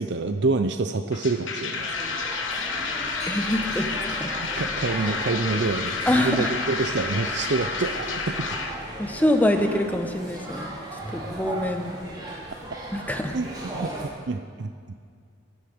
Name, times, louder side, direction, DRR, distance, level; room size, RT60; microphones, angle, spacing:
voice 1, 0.0-2.0 4.6-8.6 13.3-14.9, right 3 dB, 55° right, 8 dB, 0.6 m, -27 dB
sound 1, 1.1-8.7, left 4 dB, 70° left, 1.4 m, -30 dB
sound 2, 1.7-14.1, right 1 dB, 20° right, 3.4 m, -37 dB
voice 2, 3.3-4.3 6.1-6.5 9.0-10.7 11.1-12.0 12.9-13.4, left 1 dB, 10° left, 5 dB, 1.0 m, -25 dB
13.5 x 12.5 x 7.9 m, 2.1 s
head